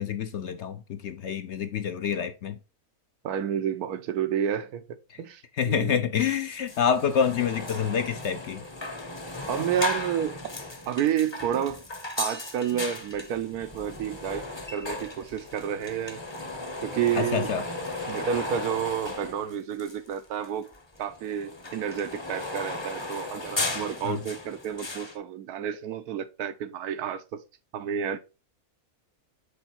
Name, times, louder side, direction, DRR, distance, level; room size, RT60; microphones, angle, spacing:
voice 1, 0.0-2.6 5.6-8.6 17.1-17.6 24.0-24.2, left 7 dB, 65° left, 0.7 m, -27 dB
voice 2, 3.2-6.1 9.5-10.4 10.9-11.8 12.2-16.2 16.8-17.5 18.1-20.7 21.0-27.4 27.7-28.2, right 9 dB, 90° right, 1.2 m, -30 dB
sound 1, 6.3-6.4 6.6-20.1 20.4-25.2, left 2 dB, 25° left, 0.7 m, -36 dB
7.0 x 3.9 x 4.3 m
omnidirectional pair, 1.6 m